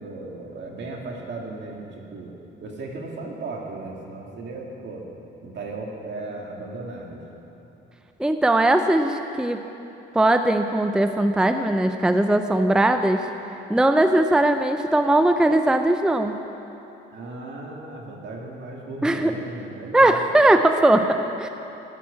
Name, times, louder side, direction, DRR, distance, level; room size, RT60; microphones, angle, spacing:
voice 1, 0.0-2.3 2.6-5.1 5.4-7.2 17.1-20.2, right 2 dB, 65° right, -1 dB, 2.2 m, -36 dB
voice 2, 8.2-9.6 10.1-13.3 13.7-16.4 19.0-19.3 19.9-21.5, right 1 dB, 5° right, 7 dB, 0.5 m, -19 dB
13.0 x 6.1 x 9.4 m, 3.0 s
cardioid pair, 90°, 20 cm